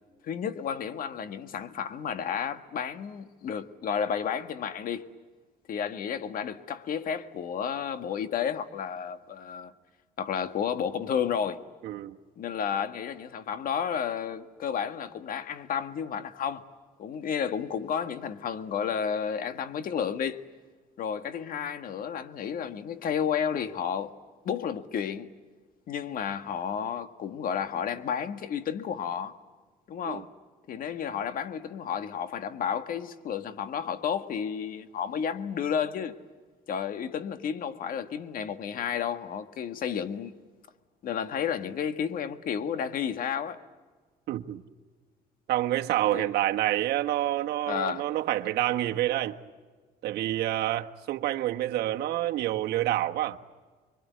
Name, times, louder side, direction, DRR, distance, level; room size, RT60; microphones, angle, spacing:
voice 1, 0.2-5.0 5.7-9.7 10.2-11.6 12.4-16.7 17.0-20.4 21.0-24.1 24.4-25.3 25.9-29.3 29.9-30.3 30.7-36.1 36.7-40.3 41.0-43.6 46.1-46.3 47.6-48.1, left 7 dB, 55° left, 1.7 m, -32 dB
voice 2, 11.8-12.2 30.0-30.2 44.3-44.6 45.5-49.3 50.0-53.4, right 14 dB, 75° right, 1.4 m, -28 dB
26.5 x 23.5 x 9.4 m
cardioid pair, 110°, 17 cm